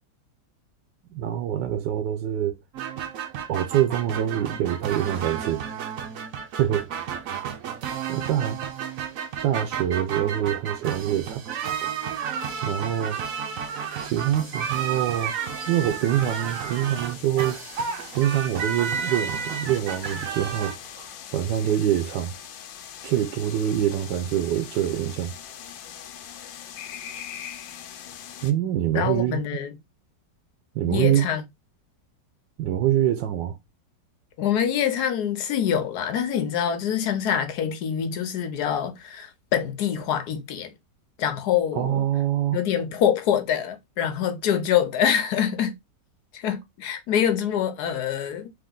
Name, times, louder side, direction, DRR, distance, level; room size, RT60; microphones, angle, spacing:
voice 1, 1.1-2.6 3.5-5.6 6.6-6.9 8.1-8.6 9.4-11.4 12.6-13.2 14.0-15.3 15.7-17.6 18.1-22.3 23.0-25.3 28.4-29.4 30.7-31.3 32.6-33.6 41.7-42.6, right 11 dB, 80° right, 1.3 m, -25 dB
sound 1, 2.7-20.7, right 7 dB, 65° right, 0.9 m, -32 dB
sound 2, 12.2-28.5, left 9 dB, 85° left, 1.4 m, -42 dB
voice 2, 28.9-29.7 30.9-31.4 34.4-40.7 41.2-42.1 42.5-45.7 46.3-48.5, left 9 dB, 65° left, 1.2 m, -25 dB
3.6 x 2.9 x 3.7 m
omnidirectional pair, 2.0 m